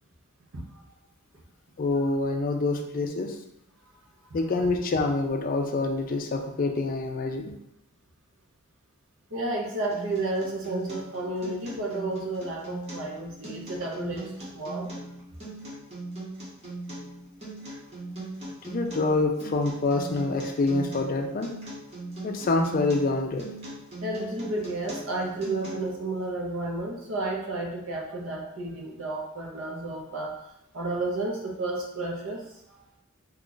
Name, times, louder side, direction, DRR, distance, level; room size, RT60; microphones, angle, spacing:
voice 1, 0.5-0.8 9.3-14.9 24.0-30.4 30.7-32.4, right 2 dB, 70° right, -1 dB, 0.7 m, -32 dB
voice 2, 1.8-3.4 4.3-7.5 18.6-21.5 22.2-23.4, left 3 dB, 40° left, 4 dB, 0.4 m, -26 dB
Acoustic guitar, 9.9-25.9, right 2 dB, 30° right, 1.0 m, -39 dB
2.9 x 2.4 x 3.8 m, 0.83 s
head